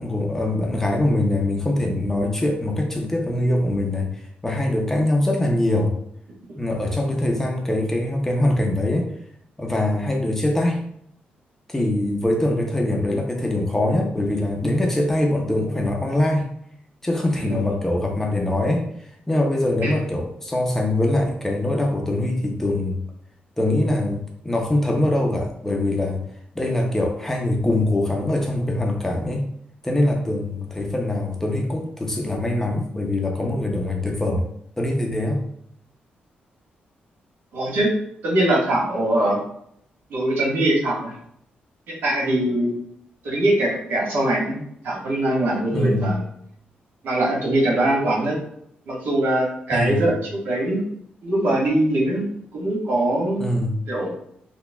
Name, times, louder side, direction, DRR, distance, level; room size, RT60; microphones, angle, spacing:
voice 1, 0.0-5.9 6.6-9.1 9.6-10.9 11.7-16.5 17.0-23.0 23.6-26.2 26.6-29.5 29.8-34.5 34.8-35.4 45.7-46.2 49.7-50.1 53.4-53.8, left 1 dB, 10° left, 1 dB, 0.5 m, -23 dB
voice 2, 37.5-37.9 38.2-39.4 40.1-41.2 41.9-42.7 43.2-44.6 44.8-46.2 47.0-48.4 48.9-50.1 50.4-50.8 51.2-52.3 52.5-53.5 53.9-54.1, right 1 dB, 90° right, -3 dB, 1.4 m, -22 dB
5.8 x 2.2 x 2.2 m, 0.70 s
wide cardioid pair, 155°, 3 cm